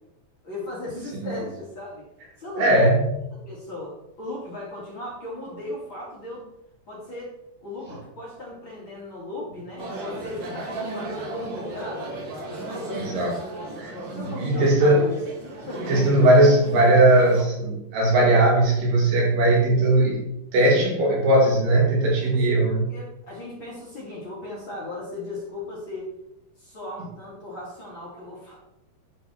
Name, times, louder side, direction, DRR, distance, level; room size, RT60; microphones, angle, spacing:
voice 1, 0.4-2.0 2.4-2.8 3.4-6.5 6.9-7.3 7.6-12.1 12.6-13.6 14.1-15.1 15.6-15.9 20.7-20.8 22.2-22.4 22.9-26.1 26.6-28.6, left 2 dB, 35° left, -6 dB, 3.0 m, -36 dB
voice 2, 2.6-3.0 12.9-13.4 13.8-15.0 15.9-20.2 20.5-22.9, right 1 dB, 65° right, -2 dB, 3.3 m, -19 dB
sound 1, 9.8-17.4, right 2 dB, 45° right, 1.5 m, -36 dB
11.0 x 4.6 x 4.3 m, 0.85 s
omnidirectional pair, 4.4 m